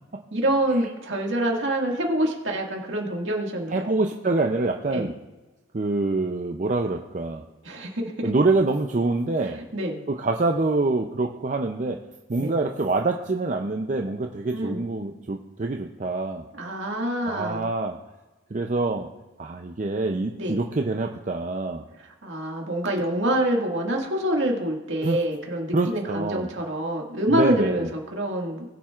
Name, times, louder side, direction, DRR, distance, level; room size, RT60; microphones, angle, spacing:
voice 1, 0.3-3.9 4.9-5.1 7.6-8.3 9.5-10.0 12.4-12.6 14.5-14.8 16.5-17.7 20.3-20.6 22.0-28.6, right 1 dB, 75° right, 0 dB, 1.9 m, -26 dB
voice 2, 3.7-5.1 5.7-7.4 8.2-9.6 10.1-12.0 12.3-16.4 17.3-18.0 18.5-19.1 19.4-21.8 25.0-25.2 25.7-26.5 27.3-27.9, right 2 dB, 40° right, 3 dB, 0.5 m, -25 dB
20.5 x 7.4 x 2.4 m, 1.1 s
head